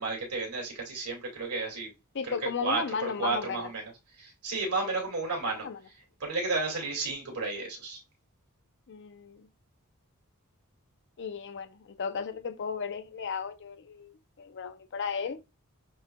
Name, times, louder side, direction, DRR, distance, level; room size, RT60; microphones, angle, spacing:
voice 1, 0.0-1.9 2.2-2.3 2.6-3.9 4.2-5.7 6.2-8.0, right 3 dB, 80° right, 2.2 m, -32 dB
voice 2, 2.1-3.7 4.9-5.0 5.6-5.8 8.9-9.5 11.2-15.4, left 6 dB, 55° left, 0.5 m, -35 dB
7.3 x 3.2 x 2.2 m
head